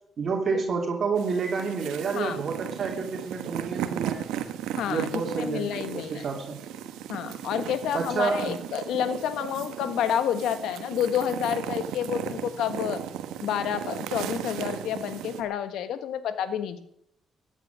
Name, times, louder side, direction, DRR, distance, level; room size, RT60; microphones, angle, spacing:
voice 1, 0.2-4.2 4.9-6.6 7.9-8.6, right 5 dB, 50° right, 1 dB, 3.0 m, -29 dB
sound 1, 1.2-15.4, right 10 dB, 85° right, 1.2 m, -36 dB
voice 2, 4.7-6.2 7.1-13.0 13.4-16.8, left 9 dB, 80° left, 11 dB, 1.4 m, -29 dB
16.0 x 10.0 x 6.2 m, 0.72 s
supercardioid pair, 75°, 0 cm